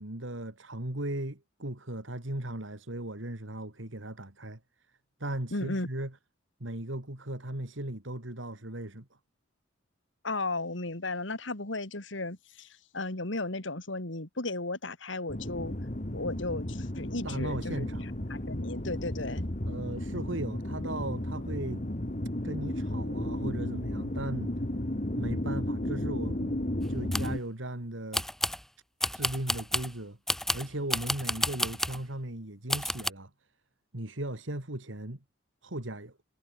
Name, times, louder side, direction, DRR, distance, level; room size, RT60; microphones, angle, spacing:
voice 1, 0.0-4.6 5.2-6.1 6.6-9.1 17.2-18.1 19.7-21.8 22.4-24.5 25.2-28.3 29.1-30.2 30.5-33.3 33.9-35.2 35.6-36.2, right 1 dB, 80° right, 3.0 m, -37 dB
voice 2, 5.5-5.9 10.2-15.7 16.1-17.9 18.3-19.5, left 2 dB, 75° left, 2.8 m, -35 dB
sound 1, 15.3-27.4, left 1 dB, 40° left, 2.0 m, -33 dB
sound 2, 26.8-27.4 28.1-28.6 29.0-29.9 30.3-32.0 32.7-33.1, left 1 dB, ahead, 1.0 m, -31 dB
head